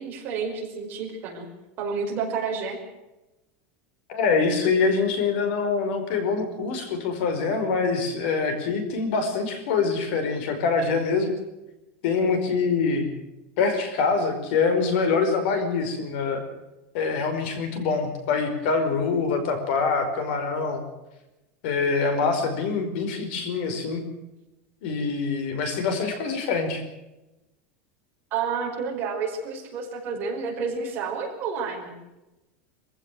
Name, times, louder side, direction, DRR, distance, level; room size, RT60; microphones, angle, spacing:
voice 1, 0.0-1.5 1.8-2.8 28.3-32.0, right 5 dB, 30° right, 0 dB, 5.4 m, -30 dB
voice 2, 4.1-11.3 12.0-13.1 13.6-16.4 16.9-20.8 21.6-24.0 24.8-26.8, left 4 dB, 55° left, 8 dB, 5.2 m, -25 dB
25.5 x 16.0 x 7.7 m, 0.99 s
supercardioid pair, 175°, 7 cm